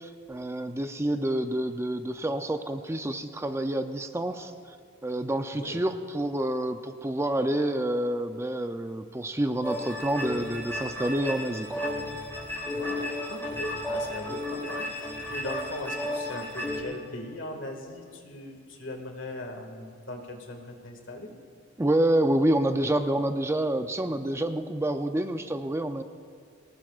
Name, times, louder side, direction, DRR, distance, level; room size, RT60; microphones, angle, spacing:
voice 1, 0.0-4.5 5.0-11.8 21.8-26.0, right 1 dB, 15° right, 8 dB, 0.5 m, -28 dB
sound 1, 9.6-16.8, left 1 dB, 10° left, 4.1 m, -33 dB
voice 2, 12.7-21.4, left 1 dB, 70° left, 3 dB, 1.9 m, -39 dB
23.0 x 19.5 x 2.4 m, 2.3 s
head